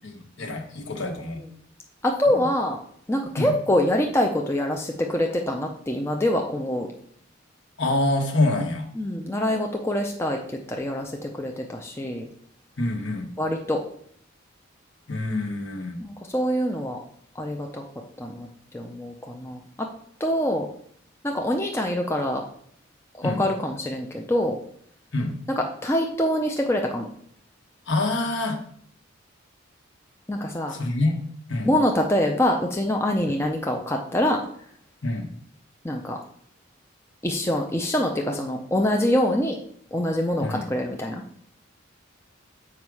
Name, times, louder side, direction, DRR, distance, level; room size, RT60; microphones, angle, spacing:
voice 1, 0.4-1.4 2.3-2.5 3.4-3.5 7.8-8.9 12.8-13.3 15.1-16.0 23.2-23.4 25.1-25.3 27.9-28.6 30.7-31.2 31.5-31.7 35.0-35.3 40.4-40.7, left 2 dB, 60° left, 3 dB, 1.3 m, -26 dB
voice 2, 2.0-2.8 3.1-6.9 9.0-10.4 10.7-12.3 13.4-13.8 16.0-17.0 17.4-17.8 18.2-18.5 18.7-19.9 20.2-20.7 21.2-22.4 23.2-24.6 25.5-27.1 30.3-30.8 31.6-34.4 35.8-36.2 37.2-39.6 39.9-41.2, left 1 dB, 10° left, 1 dB, 0.5 m, -25 dB
7.3 x 5.1 x 4.8 m, 0.63 s
head